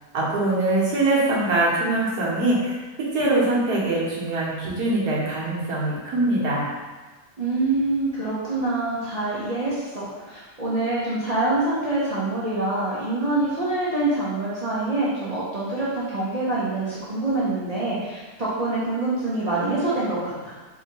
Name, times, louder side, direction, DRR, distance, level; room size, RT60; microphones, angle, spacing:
voice 1, 0.1-6.7, right 2 dB, 75° right, -6 dB, 1.6 m, -23 dB
voice 2, 7.4-20.5, right 2 dB, 40° right, -9 dB, 0.5 m, -25 dB
4.8 x 2.8 x 2.8 m, 1.3 s
omnidirectional pair, 1.7 m